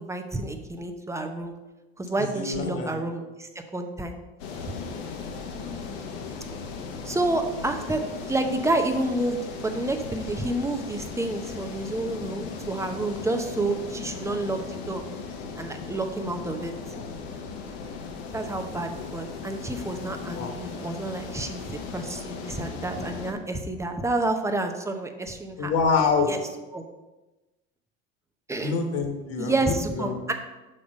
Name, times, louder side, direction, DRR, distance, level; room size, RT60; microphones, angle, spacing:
voice 1, 0.0-1.5 2.0-4.2 5.7-5.8 7.0-15.0 15.6-16.7 18.3-25.7 26.3-26.4 26.7-26.8 28.5-28.8 29.4-30.3, right 2 dB, 10° right, 6 dB, 0.7 m, -29 dB
voice 2, 2.2-3.0 16.9-17.1 20.3-20.6 25.6-26.3 28.6-30.2, left 4 dB, 55° left, 3 dB, 1.4 m, -26 dB
sound 1, 4.4-23.3, left 5 dB, 80° left, 1.0 m, -37 dB
6.5 x 3.5 x 5.2 m, 1.1 s
supercardioid pair, 90°, 30 cm